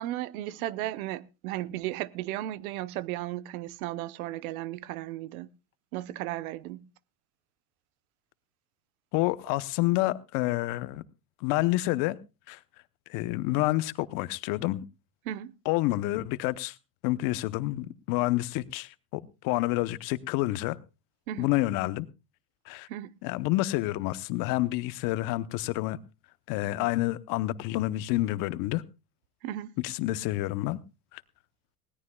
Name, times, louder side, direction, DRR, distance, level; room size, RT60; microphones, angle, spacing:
voice 1, 0.0-5.5 5.9-6.9 15.3-15.5 21.3-21.5 22.9-23.1 29.4-29.7, right 14 dB, 65° right, 0.9 m, -35 dB
voice 2, 9.1-11.0 11.4-12.2 12.5-12.6 13.1-14.8 15.6-16.7 17.0-20.8 21.4-22.1 22.7-22.9 23.2-26.0 26.5-28.8 29.8-30.8 31.1-31.2, left 18 dB, 45° left, 0.9 m, -28 dB
20.0 x 17.0 x 2.3 m
supercardioid pair, 125°, 45 cm